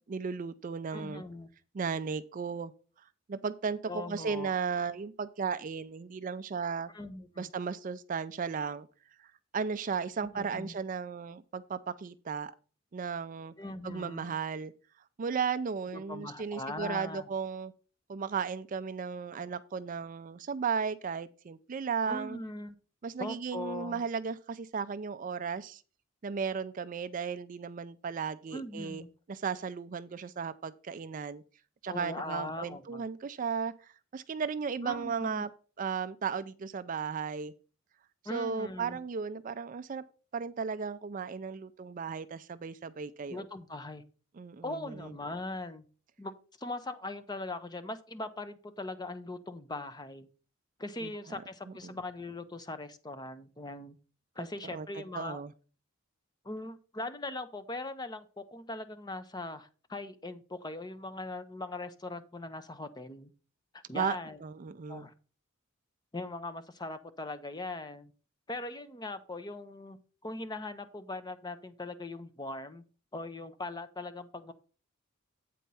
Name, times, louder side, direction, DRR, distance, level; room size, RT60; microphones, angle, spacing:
voice 1, 0.1-1.2 1.7-2.7 3.3-6.9 7.4-8.9 9.5-12.5 12.9-13.5 13.8-14.7 15.2-17.7 18.1-22.4 23.0-25.8 26.2-29.0 29.3-31.4 31.8-33.7 34.1-35.5 35.8-37.5 38.3-40.0 40.3-43.4 44.4-45.1 51.0-51.1 51.8-51.9 54.7-54.9 55.1-55.5 63.9-64.2 64.4-65.1, right 6 dB, 40° right, 0.4 m, -35 dB
voice 2, 0.9-1.5 3.9-4.5 6.9-7.5 10.2-10.8 13.6-14.3 15.9-17.3 22.1-22.7 23.2-24.0 28.5-29.1 31.9-33.0 34.8-35.5 38.2-39.0 43.3-44.0 44.6-45.8 46.2-46.3 46.6-50.3 50.8-54.0 54.4-55.4 56.4-63.3 63.9-64.4 64.9-65.1 66.1-68.1 68.5-70.0 70.2-72.8 73.1-74.5, left 2 dB, 20° left, 0.6 m, -40 dB
8.4 x 4.5 x 5.4 m
head